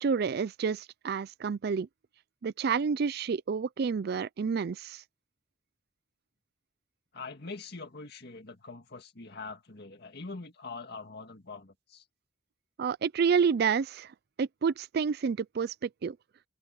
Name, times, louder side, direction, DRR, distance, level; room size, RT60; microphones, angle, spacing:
voice 1, 0.0-1.9 2.4-5.0 12.8-16.2, right 6 dB, 55° right, 0.4 m, -29 dB
voice 2, 7.1-12.0, left 3 dB, 60° left, 2.0 m, -43 dB
head